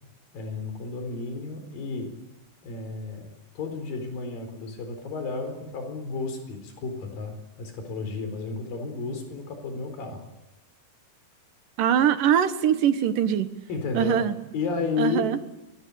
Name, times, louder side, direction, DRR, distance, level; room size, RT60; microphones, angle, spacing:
voice 1, 0.3-2.1 2.6-7.3 7.6-10.2 13.7-14.3 14.5-15.3, left 4 dB, 70° left, 6 dB, 6.0 m, -32 dB
voice 2, 11.8-13.5 13.9-14.3 15.0-15.4, right 9 dB, 65° right, 10 dB, 2.8 m, -22 dB
26.0 x 22.0 x 8.7 m, 0.93 s
omnidirectional pair, 4.3 m